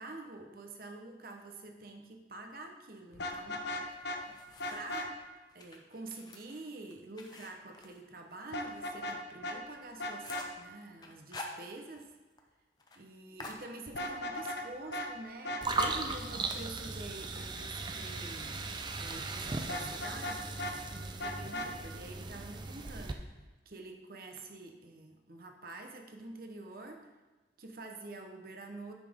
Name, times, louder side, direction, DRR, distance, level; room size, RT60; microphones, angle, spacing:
voice 1, 0.0-4.4 4.7-5.2 5.5-12.1 12.9-18.6 19.0-27.1 27.6-28.9, right 2 dB, 50° right, 4 dB, 1.0 m, -47 dB
Vehicle horn car horn honking, 3.1-4.2 4.6-5.1 8.5-9.2 9.4-9.6 10.0-10.5 13.9-14.7 14.9-15.1 15.4-15.9 19.7-20.8 21.2-21.7, left 1 dB, 65° left, 0.8 m, -37 dB
sound 1, 3.9-5.0 5.5-8.7 9.1-9.2 9.6-9.7 9.9-10.6 11.0-12.1 12.4-12.5 12.8-13.0 13.4-14.2, left 2 dB, 20° left, 0.7 m, -48 dB
sound 2, 15.6-23.1, right 3 dB, 25° right, 0.4 m, -38 dB
9.9 x 5.9 x 3.6 m, 1.2 s
head